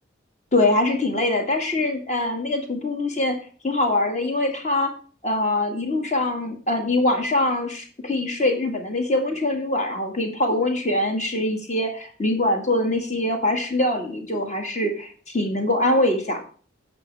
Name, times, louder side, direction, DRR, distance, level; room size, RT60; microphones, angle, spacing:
voice 1, 0.5-3.4 3.6-4.9 5.2-16.4, left 1 dB, 35° left, 3 dB, 1.9 m, -23 dB
10.5 x 7.9 x 3.4 m, 0.41 s
head